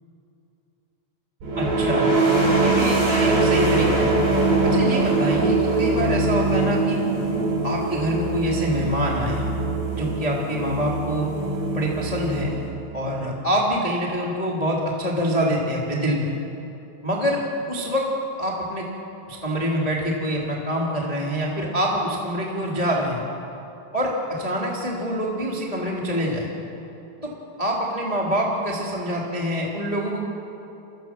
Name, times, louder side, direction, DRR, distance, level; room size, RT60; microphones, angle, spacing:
sound 1, 1.4-13.0, right 2 dB, 60° right, 6.9 m, -22 dB
voice 1, 1.5-2.1 2.6-4.2 4.6-7.0 7.6-9.5 9.9-11.3 11.7-12.6 12.9-16.3 17.0-17.4 17.7-18.1 18.4-18.8 19.3-23.2 23.9-26.5 27.2-27.3 27.6-30.3, equal, 15° left, -3 dB, 1.5 m, -25 dB
29.5 x 15.0 x 7.5 m, 2.9 s
omnidirectional pair, 6.0 m